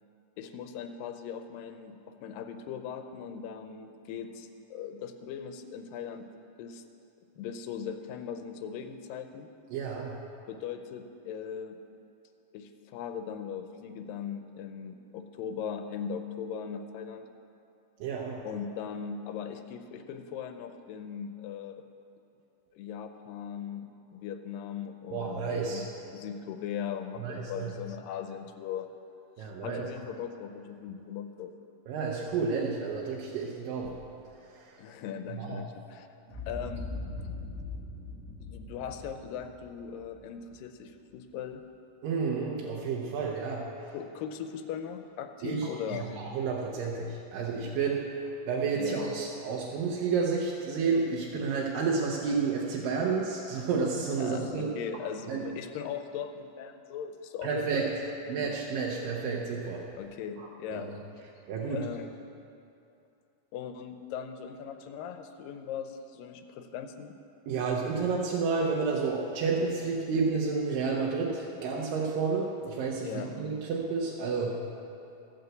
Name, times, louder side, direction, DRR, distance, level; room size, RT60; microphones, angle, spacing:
voice 1, 0.4-6.3 6.6-6.8 7.4-9.5 10.5-11.8 12.5-17.3 18.4-21.8 22.7-25.9 26.1-28.9 29.4-31.5 34.8-36.9 37.2-37.3 38.4-41.6 43.9-46.2 48.8-49.0 54.2-57.9 59.9-60.9 61.7-62.1 63.5-67.1 73.0-73.3, left 7 dB, 90° left, 7 dB, 2.4 m, -39 dB
voice 2, 9.7-10.2 18.0-18.4 25.1-25.8 27.2-27.7 29.4-29.8 31.9-34.0 34.5-34.8 35.3-35.6 42.0-43.9 45.4-48.2 48.5-54.7 55.3-55.4 57.4-57.9 58.3-59.8 60.4-60.8 61.5-61.8 67.5-74.6, right 5 dB, 90° right, -3 dB, 2.8 m, -31 dB
Boom, 36.3-40.6, left 2 dB, 45° right, 4.1 m, -41 dB
15.0 x 6.8 x 8.0 m, 2.7 s
omnidirectional pair, 3.9 m